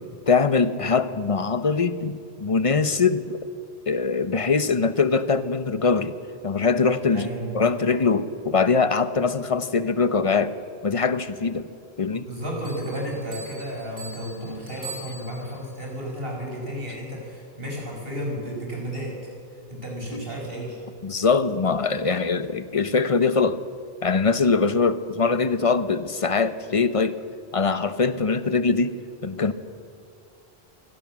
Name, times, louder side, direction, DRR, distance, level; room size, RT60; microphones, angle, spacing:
voice 1, 0.3-3.4 3.9-6.2 6.4-7.3 7.5-10.5 10.8-11.7 12.0-12.3 20.1-20.2 21.0-23.6 24.0-27.2 27.5-29.0 29.2-29.5, left 4 dB, 35° left, 12 dB, 0.9 m, -22 dB
voice 2, 7.1-7.6 12.2-19.2 19.7-20.8, equal, 65° right, -1 dB, 5.9 m, -33 dB
Bell, 12.6-15.7, right 4 dB, 20° right, 7.4 m, -42 dB
23.5 x 16.5 x 7.5 m, 2.4 s
omnidirectional pair, 1.1 m